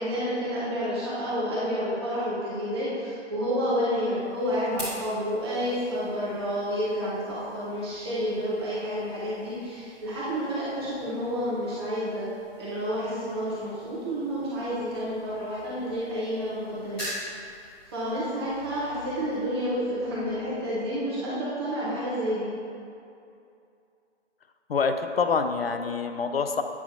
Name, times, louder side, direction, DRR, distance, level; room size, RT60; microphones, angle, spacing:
voice 1, 0.0-12.3 12.6-17.0 17.3-17.5 17.9-22.5, equal, 20° right, -9 dB, 1.0 m, -30 dB
sound 1, 3.9-20.9, equal, 5° left, 0.6 m, -46 dB
voice 2, 24.7-26.6, left 5 dB, 55° left, 7 dB, 0.5 m, -26 dB
8.3 x 5.7 x 2.7 m, 2.5 s
figure-of-eight pair, 140°, 35 cm